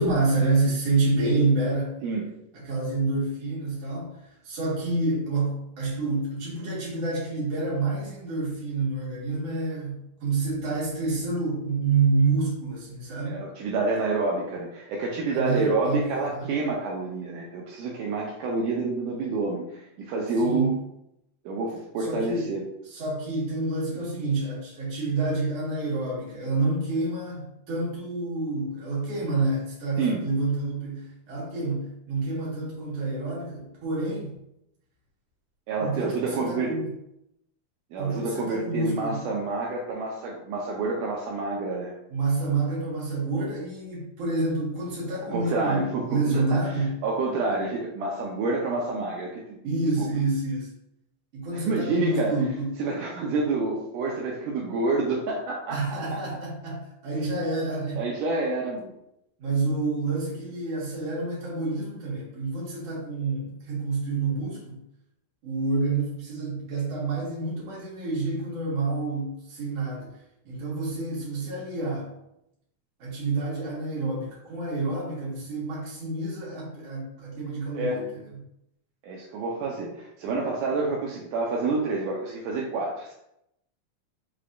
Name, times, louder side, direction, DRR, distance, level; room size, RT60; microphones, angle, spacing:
voice 1, 0.0-2.0 2.5-4.1 4.4-13.4 15.3-16.5 20.4-20.8 22.0-22.5 22.9-34.3 35.8-36.9 38.0-39.3 42.1-47.0 49.6-50.7 51.3-52.8 55.7-58.0 59.4-64.8 65.4-70.2 70.5-72.1 73.0-78.4, right 3 dB, 50° right, -6 dB, 2.3 m, -28 dB
voice 2, 13.3-20.8 21.5-22.6 30.0-30.2 35.7-36.8 37.9-41.9 45.3-46.5 47.0-49.6 50.0-50.1 51.5-52.4 52.8-55.8 58.0-58.9 77.7-78.0 79.0-83.1, right 3 dB, 80° right, -2 dB, 2.0 m, -28 dB
5.5 x 3.4 x 2.5 m, 0.81 s
omnidirectional pair, 4.0 m